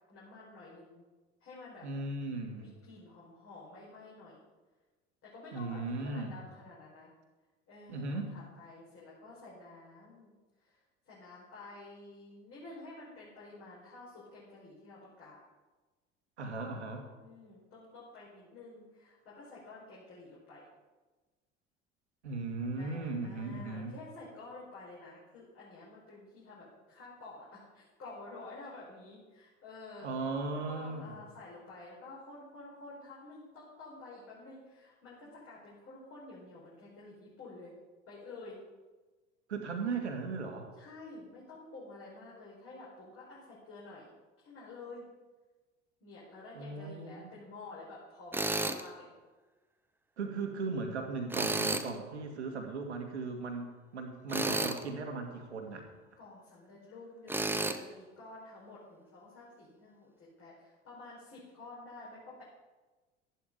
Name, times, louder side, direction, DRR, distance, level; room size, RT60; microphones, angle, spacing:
voice 1, 0.1-1.0 1.4-1.9 2.6-4.4 5.2-7.1 7.7-10.3 10.6-15.4 17.0-20.6 22.7-30.1 30.5-37.7 38.1-38.6 40.8-44.1 44.4-45.0 46.0-49.1 56.2-62.4, left 2 dB, 40° left, -7 dB, 5.0 m, -50 dB
voice 2, 1.8-2.7 5.5-6.4 7.9-8.3 16.4-17.1 22.2-23.9 30.0-31.2 39.5-40.7 46.5-47.3 50.2-55.8, right 3 dB, 80° right, 4 dB, 2.0 m, -37 dB
Tools, 48.3-48.8 51.3-51.9 54.3-54.8 57.3-57.8, right 2 dB, 5° right, 0.9 m, -31 dB
13.0 x 11.0 x 5.1 m, 1.2 s
figure-of-eight pair, 70°, 34 cm